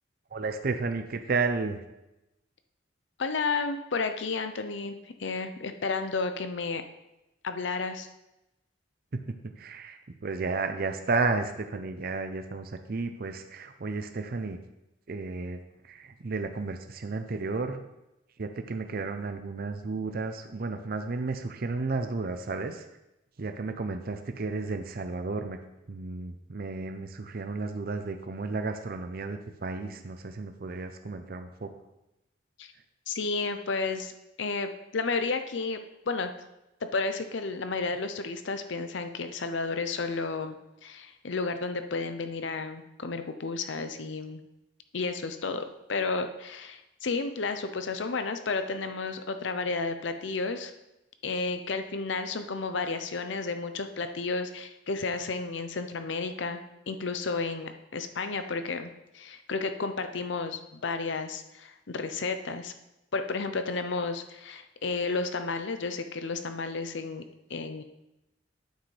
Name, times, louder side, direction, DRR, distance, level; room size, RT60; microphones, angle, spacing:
voice 1, 0.3-1.8 9.1-14.6 15.1-15.6 15.8-17.8 18.4-22.8 23.4-25.6 25.9-31.7, right 3 dB, 50° right, 7 dB, 0.6 m, -32 dB
voice 2, 3.2-6.8 7.4-8.1 32.6-32.7 33.1-34.1 34.4-35.8 36.1-36.3 36.8-40.6 40.8-44.4 44.9-50.7 51.2-62.7 63.1-67.2 67.5-67.8, left 4 dB, 70° left, 8 dB, 0.6 m, -32 dB
9.1 x 7.5 x 3.3 m, 0.93 s
head